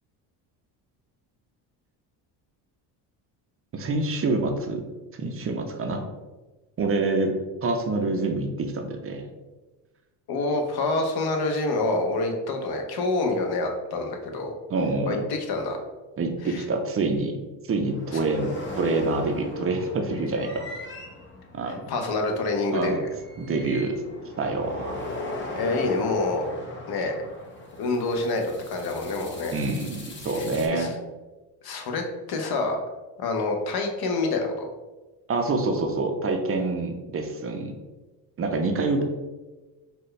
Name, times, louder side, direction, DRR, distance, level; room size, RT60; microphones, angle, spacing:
voice 1, 3.7-4.8 5.1-6.1 6.8-7.4 7.6-9.3 14.7-15.2 16.2-17.4 17.7-20.7 21.5-21.8 22.7-23.0 23.4-24.0 24.4-25.0 29.5-30.9 35.3-37.7 38.4-39.0, right 3 dB, 30° right, 4 dB, 0.5 m, -26 dB
voice 2, 10.3-14.5 15.1-15.8 16.4-16.6 18.1-18.2 21.7-23.1 25.5-26.5 26.9-27.2 27.8-29.6 30.3-30.5 30.7-30.9 31.6-32.0 32.3-32.8 33.2-34.7, left 2 dB, 50° left, 4 dB, 0.8 m, -27 dB
sound 1, 17.8-30.7, left 2 dB, 25° left, 0.7 m, -39 dB
4.2 x 2.2 x 3.2 m, 1.2 s
supercardioid pair, 85°, 48 cm